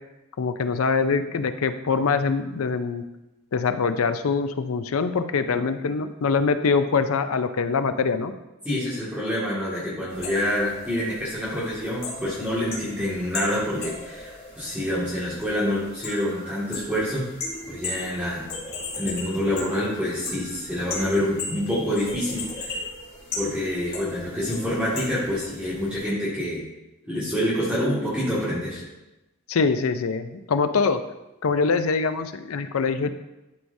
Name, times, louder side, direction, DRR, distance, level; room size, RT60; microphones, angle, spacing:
voice 1, 0.4-3.0 3.5-8.3 29.5-31.0 31.4-33.1, left 5 dB, 75° left, 10 dB, 0.5 m, -24 dB
voice 2, 8.6-17.2 17.7-18.5 18.9-22.8 23.4-26.6 27.1-28.8, left 1 dB, 5° right, -9 dB, 1.9 m, -27 dB
sound 1, 10.1-26.0, left 3 dB, 50° left, 2.7 m, -37 dB
11.5 x 4.7 x 2.7 m, 1.0 s
head